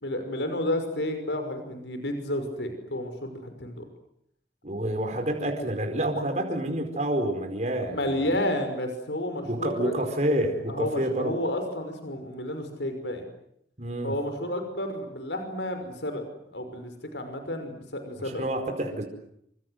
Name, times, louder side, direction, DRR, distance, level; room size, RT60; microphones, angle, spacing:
voice 1, 0.0-3.9 7.8-10.1 10.7-13.3 14.0-16.2 16.5-18.4, left 1 dB, 85° left, 7 dB, 5.8 m, -31 dB
voice 2, 4.6-8.4 9.4-11.3 13.8-14.1 18.2-19.0, right 1 dB, 40° right, 4 dB, 4.8 m, -28 dB
28.0 x 26.0 x 8.0 m, 0.74 s
head